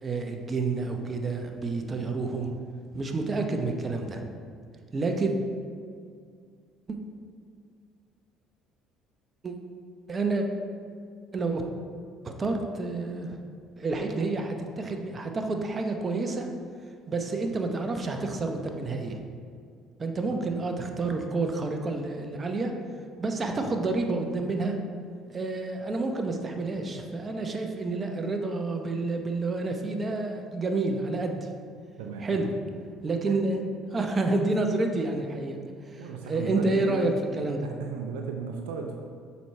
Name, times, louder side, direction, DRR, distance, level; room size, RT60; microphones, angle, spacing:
voice 1, 0.0-2.5 2.9-4.3 4.9-5.3 6.9-7.0 9.4-9.5 10.1-10.5 11.3-11.6 12.2-13.4 13.8-16.5 17.1-19.2 20.0-22.7 23.2-24.8 25.3-31.5 32.2-32.5 33.0-33.6 33.9-35.6 35.9-36.0 36.3-37.6, right 3 dB, 35° right, 4 dB, 0.9 m, -29 dB
voice 2, 32.0-32.4 33.3-33.4 36.0-37.2 37.6-38.9, right 5 dB, 85° right, 3 dB, 0.5 m, -35 dB
7.0 x 4.7 x 4.3 m, 2.2 s
hypercardioid pair, 70°, 0 cm